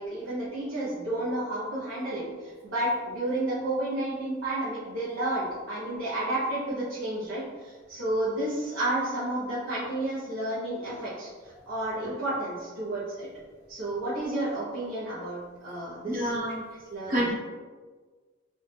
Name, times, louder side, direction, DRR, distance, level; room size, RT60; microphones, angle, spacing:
voice 1, 0.0-11.3 11.7-13.3 13.7-16.3 16.9-17.3, right 1 dB, 85° right, -11 dB, 1.1 m, -31 dB
voice 2, 16.1-16.6 17.1-17.3, right 1 dB, 45° right, -6 dB, 1.4 m, -27 dB
3.9 x 2.6 x 3.4 m, 1.4 s
head